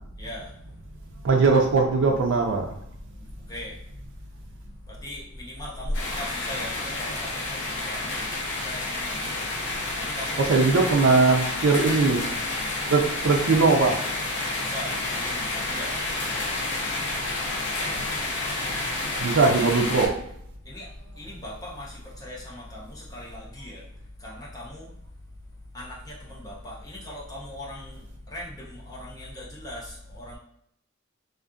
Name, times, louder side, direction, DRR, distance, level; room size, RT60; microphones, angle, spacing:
voice 1, 0.2-0.5 3.2-3.8 4.9-8.3 8.6-9.5 10.0-11.2 14.6-16.0 17.8-18.0 20.6-23.9 24.2-24.9 25.7-30.4, left 1 dB, 20° left, -5 dB, 0.8 m, -40 dB
voice 2, 1.2-2.7 10.5-12.3 12.9-14.0 19.2-20.1, right 4 dB, 65° right, 2 dB, 0.4 m, -20 dB
sound 1, 5.9-20.1, left 2 dB, 60° left, 0.7 m, -30 dB
2.5 x 2.5 x 2.3 m, 0.73 s
head